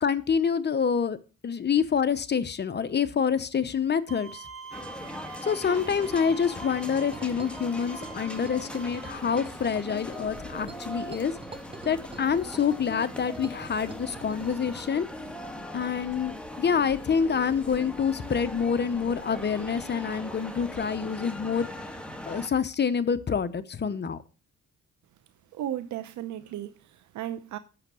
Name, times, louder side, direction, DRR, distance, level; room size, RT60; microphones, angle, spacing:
voice 1, 0.0-1.2 1.4-4.4 5.4-11.3 11.8-15.1 15.7-21.7 22.3-24.2, left 6 dB, 35° left, 0.9 m, -27 dB
Bowed string instrument, 4.1-9.1, right 5 dB, 45° right, 1.9 m, -45 dB
sound 1, 4.7-22.5, left 1 dB, 5° left, 1.6 m, -40 dB
sound 2, 6.7-14.6, right 3 dB, 20° right, 1.2 m, -47 dB
voice 2, 25.5-27.6, right 11 dB, 75° right, 0.8 m, -35 dB
8.8 x 6.6 x 6.2 m
cardioid pair, 90°, 30 cm